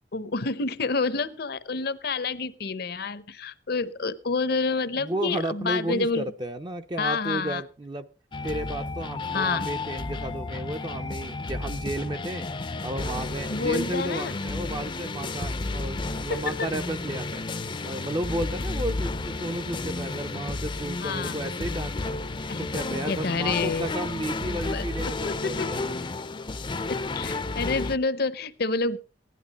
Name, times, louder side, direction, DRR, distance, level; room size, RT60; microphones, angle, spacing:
voice 1, 0.1-6.3 7.0-7.6 9.3-9.7 13.4-14.4 16.3-16.7 21.0-21.4 22.5-22.7 23.1-23.9 24.7-25.7 26.9-29.0, left 4 dB, 60° left, 14 dB, 0.8 m, -28 dB
voice 2, 5.0-8.1 8.4-12.5 12.8-17.5 17.8-22.2 22.6-26.1, right 1 dB, 25° right, 7 dB, 0.6 m, -33 dB
sound 1, 8.3-28.0, left 3 dB, 30° left, 0.6 m, -32 dB
16.0 x 11.0 x 4.1 m, 0.36 s
head